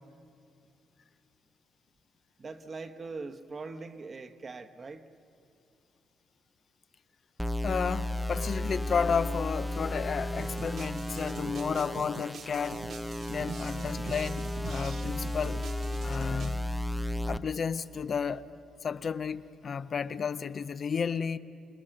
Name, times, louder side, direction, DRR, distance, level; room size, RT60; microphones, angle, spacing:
voice 1, 2.4-5.1, right 3 dB, 35° right, 1.2 m, -42 dB
sound 1, 7.4-17.4, left 1 dB, ahead, 0.6 m, -34 dB
voice 2, 7.6-12.8 13.3-15.7 16.0-16.6 17.3-18.4 18.8-21.4, left 6 dB, 45° left, 0.6 m, -32 dB
sound 2, 10.4-16.6, right 6 dB, 65° right, 1.0 m, -45 dB
28.0 x 19.0 x 6.6 m
cardioid pair, 90°, 0 cm